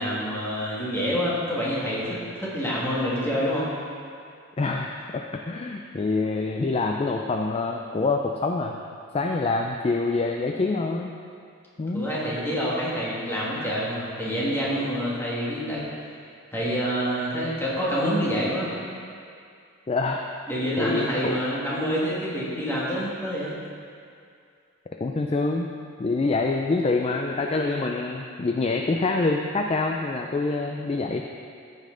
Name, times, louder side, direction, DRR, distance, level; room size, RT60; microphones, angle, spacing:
voice 1, 0.0-3.7 11.9-15.8 16.5-18.7 20.5-23.6, equal, 10° left, -7 dB, 1.7 m, -27 dB
voice 2, 4.6-8.8 9.1-11.2 11.8-12.1 19.9-20.3 20.8-21.4 25.0-25.7 26.0-31.2, left 3 dB, 30° left, 2 dB, 0.3 m, -26 dB
14.5 x 5.4 x 3.8 m, 2.4 s
head